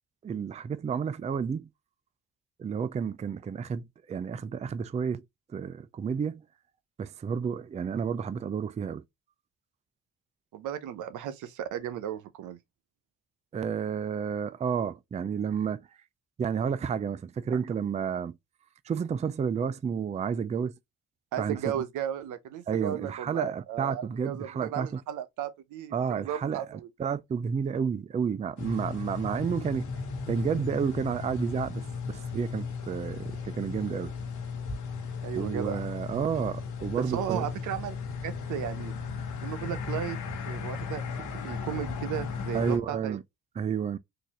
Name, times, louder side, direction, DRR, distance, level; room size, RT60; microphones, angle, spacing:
voice 1, 0.2-1.7 2.6-5.2 5.5-6.4 7.0-9.0 13.5-15.9 16.4-18.3 18.8-20.7 21.4-21.6 22.7-25.0 25.9-29.9 30.3-34.1 35.3-37.5 42.5-43.2 43.6-44.0, right 7 dB, 25° right, 0.3 m, -31 dB
voice 2, 10.5-12.6 17.5-17.6 21.3-26.9 35.2-35.8 37.0-38.0 38.2-38.9 39.4-40.2 40.5-41.0 41.4-43.2, right 10 dB, 80° right, 0.7 m, -35 dB
sound 1, 28.6-42.8, left 5 dB, 90° left, 1.3 m, -36 dB
4.0 x 2.6 x 2.9 m
cardioid pair, 90°, 30 cm